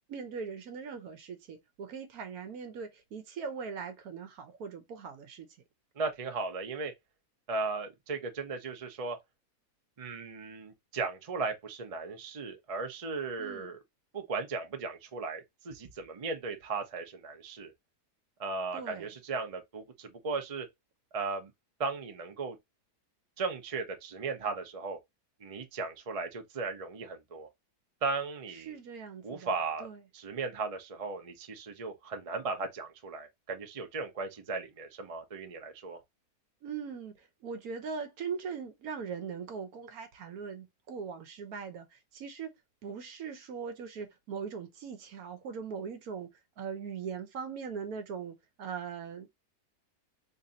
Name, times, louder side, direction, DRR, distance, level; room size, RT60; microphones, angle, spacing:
voice 1, 0.1-5.5 13.4-13.7 18.7-19.1 28.7-29.5 29.8-30.0 36.6-42.5 42.8-46.3 46.6-49.3, right 6 dB, 70° right, 1.2 m, -40 dB
voice 2, 6.0-6.9 7.5-9.2 10.0-13.8 14.1-17.7 18.4-20.7 21.1-21.5 21.8-22.6 23.4-25.0 25.4-27.5 28.0-28.8 29.2-29.9 30.1-36.0, right 4 dB, 35° right, 0.5 m, -36 dB
3.2 x 2.6 x 3.9 m
omnidirectional pair, 1.7 m